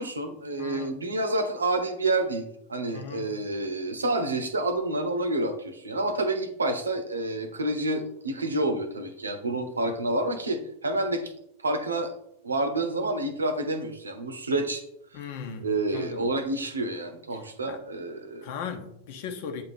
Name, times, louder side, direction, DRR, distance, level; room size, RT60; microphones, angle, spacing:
voice 1, 0.0-11.3 11.6-12.1 12.4-14.8 15.6-18.5, right 2 dB, 75° right, 0.8 m, -28 dB
voice 2, 0.6-0.9 2.9-3.3 15.1-15.7 15.9-16.3 17.7-17.8 18.4-19.6, left 6 dB, 50° left, 1.0 m, -37 dB
8.5 x 3.8 x 4.1 m
figure-of-eight pair, 90°, 0 cm